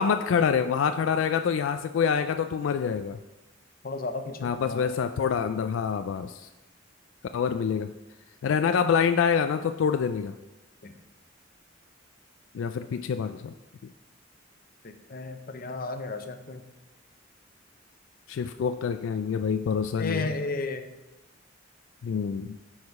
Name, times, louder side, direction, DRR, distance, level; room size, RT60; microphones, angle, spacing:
voice 1, 0.0-3.2 4.4-6.5 7.3-7.9 8.4-10.3 12.5-13.5 18.3-20.3 22.0-22.6, left 6 dB, 80° left, 9 dB, 0.3 m, -26 dB
voice 2, 3.8-4.8 10.8-10.9 14.8-16.6 20.0-20.9, left 3 dB, 45° left, 8 dB, 0.7 m, -33 dB
9.5 x 4.8 x 4.7 m, 1.0 s
head